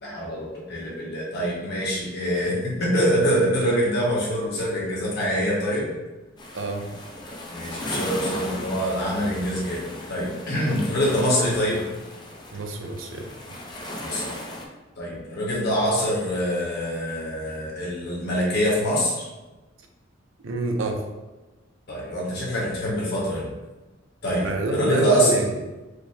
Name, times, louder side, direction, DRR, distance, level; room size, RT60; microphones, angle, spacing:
voice 1, 0.0-5.9 7.5-11.8 14.0-14.3 15.0-19.3 21.9-23.5 24.2-25.4, equal, 50° left, -5 dB, 1.1 m, -25 dB
sound 1, 6.4-14.7, left 1 dB, 20° left, 0.4 m, -36 dB
voice 2, 6.5-6.9 10.7-10.8 12.5-13.3 20.4-21.0 24.4-25.6, right 2 dB, 65° right, 3 dB, 0.5 m, -27 dB
4.9 x 2.0 x 3.2 m, 1.1 s
head